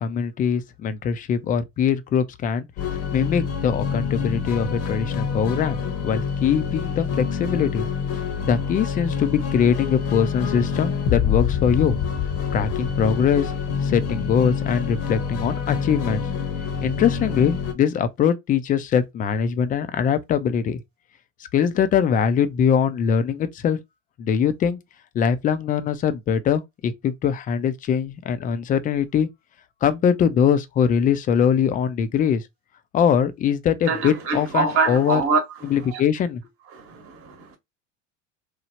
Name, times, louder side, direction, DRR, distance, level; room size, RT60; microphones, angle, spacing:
voice 1, 0.0-2.7 3.1-7.9 8.4-12.0 12.5-13.5 13.8-16.2 16.8-20.8 21.5-23.8 24.2-24.8 25.1-29.3 29.8-32.4 32.9-35.2 35.7-36.4, left 7 dB, 25° left, 0.4 m, -22 dB
sound 1, 2.8-17.7, left 6 dB, 55° left, 0.8 m, -26 dB
voice 2, 33.9-35.4 35.7-36.0 36.7-37.6, right 4 dB, 35° right, 1.0 m, -24 dB
3.1 x 2.0 x 2.7 m
hypercardioid pair, 80°, 37 cm